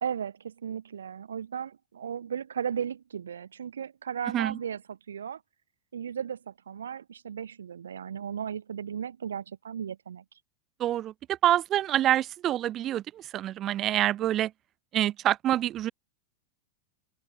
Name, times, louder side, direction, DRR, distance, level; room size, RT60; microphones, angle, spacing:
voice 1, 0.0-5.4 5.9-10.2, right 8 dB, 65° right, 0.9 m, -36 dB
voice 2, 10.8-14.5 14.9-15.9, right 12 dB, 30° right, 1.1 m, -26 dB
figure-of-eight pair, 90°, 0 cm